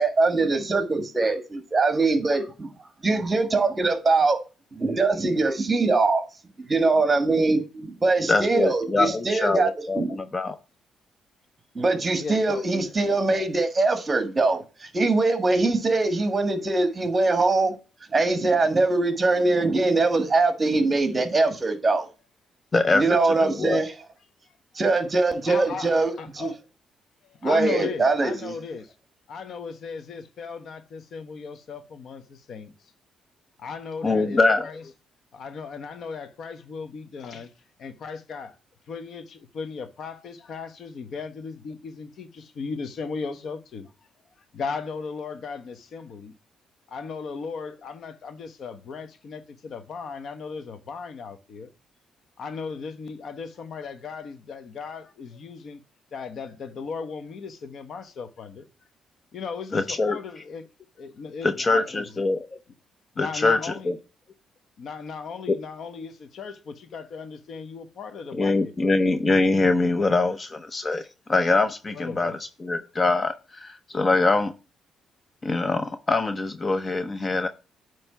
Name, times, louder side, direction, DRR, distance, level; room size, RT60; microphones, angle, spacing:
voice 1, 0.0-2.7 3.0-4.4 4.7-6.2 6.7-9.7 10.0-10.2 11.8-17.7 18.1-22.1 22.9-23.9 24.8-26.5 27.4-28.5, right 3 dB, 30° right, 1.6 m, -22 dB
voice 2, 8.3-10.6 22.7-23.8 34.0-34.7 59.7-60.4 61.4-62.5 63.2-63.9 65.5-65.6 68.3-71.0 71.3-74.5 75.4-77.5, left 3 dB, 30° left, 0.7 m, -23 dB
voice 3, 12.2-12.6 25.4-26.6 27.2-28.9 29.3-32.7 33.6-34.8 35.3-37.5 37.8-38.6 38.9-43.9 44.5-46.3 46.9-51.7 52.4-55.8 56.1-58.6 59.3-60.7 61.0-62.3 63.1-63.9 64.8-68.9 71.9-72.4, left 5 dB, 60° left, 1.0 m, -36 dB
9.0 x 3.2 x 5.6 m
cardioid pair, 90°, 0 cm